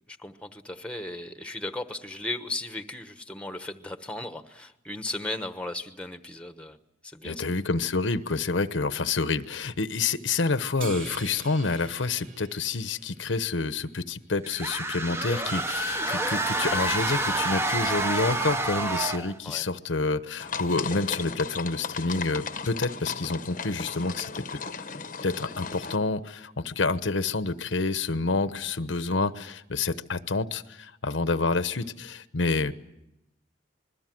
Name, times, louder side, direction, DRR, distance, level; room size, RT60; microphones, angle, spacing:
voice 1, 0.1-6.8 7.0-7.4 15.3-15.7 19.4-19.7, left 2 dB, 5° left, 8 dB, 1.1 m, -36 dB
voice 2, 7.2-24.3 25.2-32.7, left 3 dB, 85° left, 12 dB, 1.0 m, -28 dB
sound 1, 10.8-13.5, right 3 dB, 45° right, 3.1 m, -43 dB
sound 2, 14.4-19.4, right 2 dB, 15° right, 0.8 m, -28 dB
sound 3, 20.4-26.0, left 5 dB, 45° left, 0.9 m, -36 dB
26.5 x 21.5 x 7.7 m, 0.86 s
head